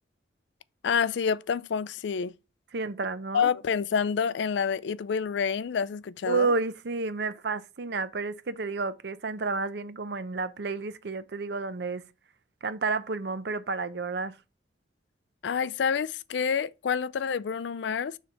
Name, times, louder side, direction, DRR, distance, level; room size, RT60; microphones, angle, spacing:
voice 1, 0.8-2.3 3.3-6.5 15.4-18.2, left 6 dB, 70° left, 0.4 m, -28 dB
voice 2, 2.7-3.5 6.3-12.0 12.6-14.4, right 4 dB, 60° right, 0.6 m, -31 dB
6.6 x 3.3 x 5.7 m
head